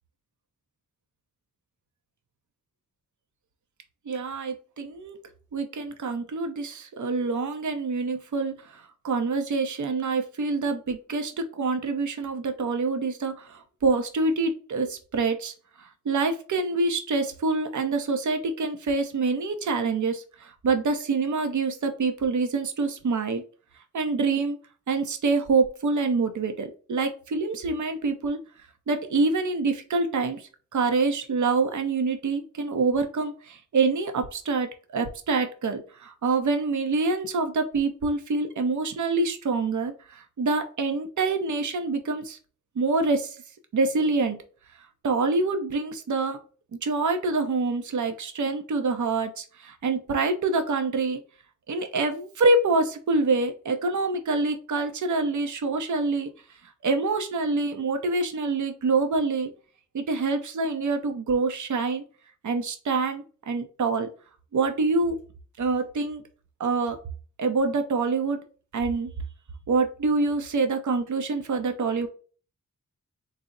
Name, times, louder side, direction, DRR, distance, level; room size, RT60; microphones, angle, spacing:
voice 1, 4.1-5.2 5.5-23.4 23.9-24.6 24.9-28.4 28.9-42.4 42.8-43.4 43.7-44.4 45.0-46.4 46.8-51.2 51.7-56.3 56.8-59.5 59.9-62.0 62.4-64.1 64.5-65.2 65.6-66.2 66.6-67.0 67.4-68.4 68.7-69.1 69.7-72.1, right 3 dB, 65° right, 7 dB, 0.7 m, -26 dB
4.0 x 2.0 x 3.7 m, 0.39 s
wide cardioid pair, 65°, 31 cm